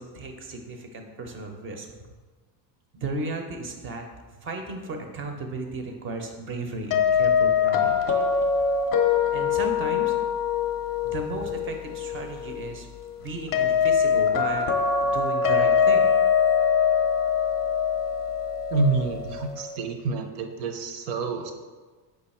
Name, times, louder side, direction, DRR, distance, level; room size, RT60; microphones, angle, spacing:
voice 1, 0.0-2.0 2.9-4.0 4.4-8.0 9.3-10.1 11.0-12.9 13.2-16.1, right 3 dB, 30° right, 4 dB, 0.5 m, -35 dB
sound 1, 6.9-19.8, left 6 dB, 30° left, 0.5 m, -23 dB
voice 2, 18.7-21.5, right 3 dB, 90° right, 5 dB, 0.7 m, -27 dB
4.9 x 2.4 x 4.1 m, 1.4 s
supercardioid pair, 125°, 47 cm